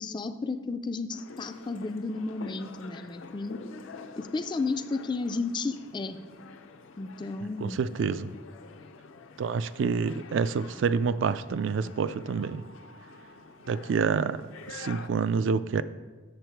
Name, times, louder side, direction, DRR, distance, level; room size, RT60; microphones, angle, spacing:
voice 1, 0.0-3.6 4.2-6.2 7.0-7.8, left 3 dB, 20° left, 10 dB, 0.3 m, -33 dB
sound 1, 1.1-15.1, left 4 dB, 80° left, 0.6 m, -48 dB
voice 2, 7.6-8.3 9.4-12.6 13.7-15.8, right 5 dB, 65° right, 15 dB, 0.3 m, -28 dB
8.2 x 6.8 x 4.5 m, 1.3 s
head